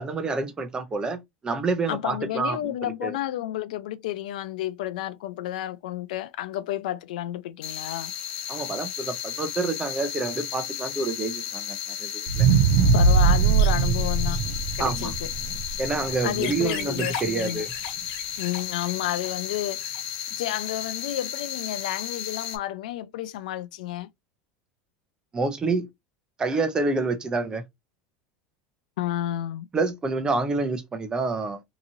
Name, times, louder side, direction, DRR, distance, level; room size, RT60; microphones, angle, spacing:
voice 1, 0.0-3.2 8.5-12.5 14.8-15.1 15.8-17.7 25.3-25.9 26.4-27.6 29.7-31.6, right 3 dB, 20° right, 0.6 m, -28 dB
voice 2, 1.9-8.1 12.9-14.4 14.7-15.3 16.2-17.6 18.4-19.9 20.4-24.1 29.0-29.7, left 13 dB, 85° left, 0.4 m, -31 dB
sound 1, 7.6-22.6, left 9 dB, 65° left, 1.0 m, -33 dB
sound 2, 12.3-16.5 17.0-17.1, right 5 dB, 70° right, 0.5 m, -21 dB
2.9 x 2.5 x 2.6 m
supercardioid pair, 130°, 4 cm